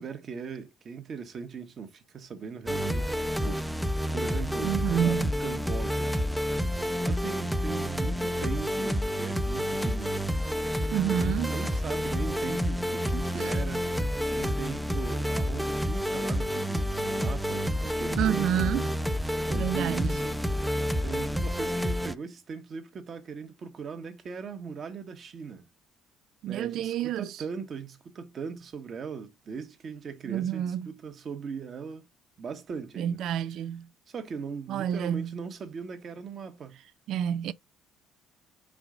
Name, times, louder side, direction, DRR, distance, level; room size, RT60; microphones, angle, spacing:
voice 1, 0.0-6.2 7.0-10.3 11.1-13.9 14.3-18.9 19.5-20.4 21.0-25.7 26.5-32.1 32.4-33.2 34.1-36.8, right 6 dB, 45° right, 1.4 m, -39 dB
sound 1, 2.7-22.1, equal, ahead, 0.6 m, -29 dB
voice 2, 4.6-5.3 10.9-11.5 13.4-13.5 18.2-18.9 19.6-20.2 26.4-27.3 30.2-30.9 33.0-33.9 34.7-35.3 37.1-37.5, right 10 dB, 70° right, 0.4 m, -28 dB
5.0 x 3.8 x 5.0 m
supercardioid pair, 85°, 0 cm